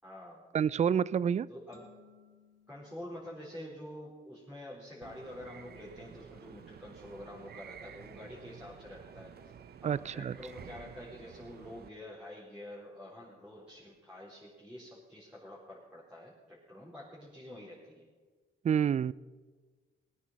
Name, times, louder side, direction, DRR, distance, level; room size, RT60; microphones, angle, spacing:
voice 1, 0.0-0.6 1.5-1.9 2.7-9.5 9.8-18.1, left 1 dB, 5° right, -8 dB, 4.2 m, -47 dB
voice 2, 0.5-1.5 9.8-10.3 18.6-19.1, right 8 dB, 35° right, 21 dB, 0.4 m, -28 dB
sound 1, 1.7-4.4, left 5 dB, 15° left, 3.8 m, -63 dB
sound 2, 5.0-11.9, right 7 dB, 55° right, 0.8 m, -51 dB
19.0 x 9.6 x 5.7 m, 1.4 s
cardioid pair, 90°, 20 cm